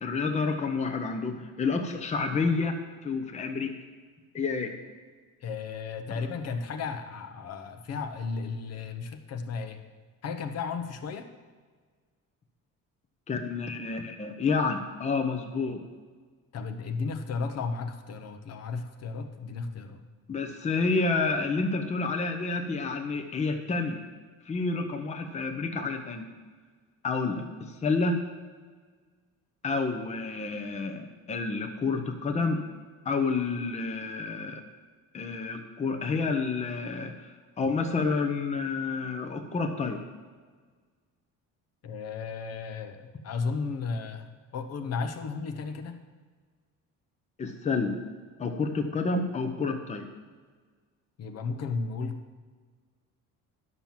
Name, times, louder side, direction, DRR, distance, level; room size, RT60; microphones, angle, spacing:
voice 1, 0.0-3.7 4.3-4.7 13.3-15.8 20.3-24.0 24.5-26.3 27.0-28.2 29.6-32.6 33.0-34.6 35.1-40.0 47.4-48.0 48.4-50.1, left 4 dB, 20° left, 5 dB, 0.8 m, -29 dB
voice 2, 5.4-9.8 10.2-11.3 16.5-20.1 41.8-46.0 51.2-52.2, left 4 dB, 50° left, 7 dB, 0.9 m, -34 dB
11.0 x 5.9 x 7.2 m, 1.5 s
cardioid pair, 150°, 32 cm